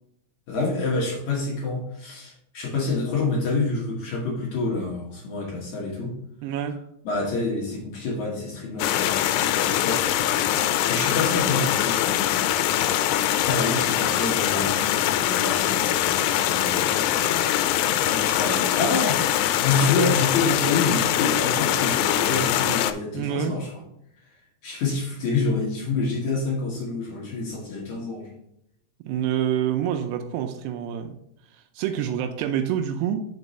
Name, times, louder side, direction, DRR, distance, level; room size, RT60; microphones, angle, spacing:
voice 1, 0.5-6.1 7.0-10.0 10.5-12.2 13.3-17.4 18.1-23.7 24.6-28.3, left 3 dB, 70° left, -2 dB, 1.8 m, -27 dB
voice 2, 6.4-6.8 23.1-23.6 29.0-31.2 31.5-33.2, right 9 dB, 85° right, 6 dB, 2.4 m, -27 dB
sound 1, 8.8-22.9, left 12 dB, 85° left, 3.0 m, -23 dB
6.0 x 4.6 x 5.4 m, 0.75 s
omnidirectional pair, 5.4 m